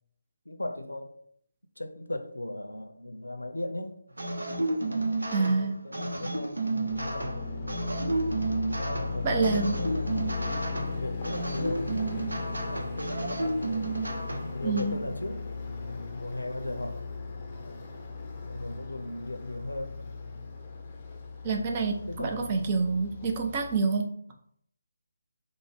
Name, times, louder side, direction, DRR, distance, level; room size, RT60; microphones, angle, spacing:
voice 1, 0.5-1.2 1.8-4.0 4.8-8.0 8.8-10.5 10.8-13.2 14.3-15.5 15.9-17.1 17.6-17.8 18.5-20.0 22.1-22.7, left 1 dB, 85° left, 7 dB, 0.5 m, -38 dB
sound 1, 4.2-14.8, right 2 dB, 75° right, 0.7 m, -32 dB
voice 2, 5.3-5.8 9.2-9.8 14.6-15.0 21.4-24.1, right 4 dB, 25° right, 3 dB, 0.5 m, -27 dB
sound 2, 6.9-23.8, left 3 dB, 25° left, 0.5 m, -37 dB
3.4 x 2.1 x 3.4 m, 0.67 s
figure-of-eight pair, 150°, 0 cm